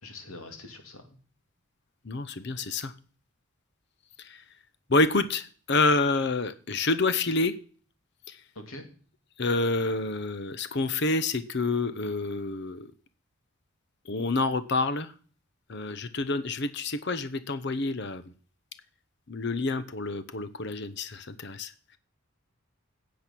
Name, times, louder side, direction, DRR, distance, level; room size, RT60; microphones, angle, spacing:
voice 1, 0.0-1.1 8.5-8.8, left 2 dB, 85° left, 5 dB, 2.8 m, -44 dB
voice 2, 2.0-2.9 4.2-4.4 4.9-7.5 8.3-8.4 9.4-12.9 14.1-15.1 15.7-18.2 19.3-21.7, left 3 dB, 55° left, 13 dB, 0.8 m, -28 dB
14.0 x 8.5 x 6.1 m, 0.43 s
head